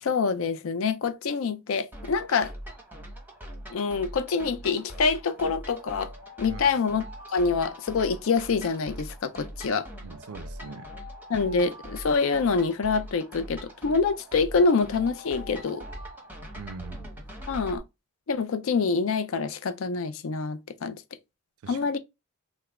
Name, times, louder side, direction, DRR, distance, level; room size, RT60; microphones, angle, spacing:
voice 1, 0.0-2.5 3.7-6.1 6.4-7.0 7.3-9.9 11.3-15.8 17.5-17.8 18.3-21.0 21.7-22.0, left 4 dB, 60° left, 0.4 m, -26 dB
sound 1, 1.9-17.8, equal, 10° right, 0.7 m, -42 dB
Alarm, 5.2-8.9 9.6-13.3 14.0-17.2, left 2 dB, 80° left, 1.2 m, -50 dB
voice 2, 10.0-10.9 16.6-17.1 21.6-22.0, right 5 dB, 70° right, 0.4 m, -42 dB
3.3 x 2.0 x 3.5 m
head